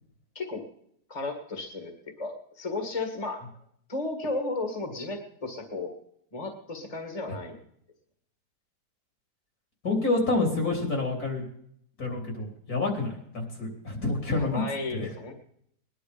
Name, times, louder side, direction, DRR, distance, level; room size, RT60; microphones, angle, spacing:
voice 1, 1.1-1.9 2.2-3.4 3.9-5.9 6.3-7.6 14.4-15.3, left 2 dB, 20° left, 3 dB, 1.9 m, -34 dB
voice 2, 9.8-11.5 12.0-14.6 14.9-15.1, left 3 dB, 60° left, 1 dB, 3.9 m, -28 dB
20.0 x 11.0 x 5.1 m, 0.69 s
omnidirectional pair, 1.8 m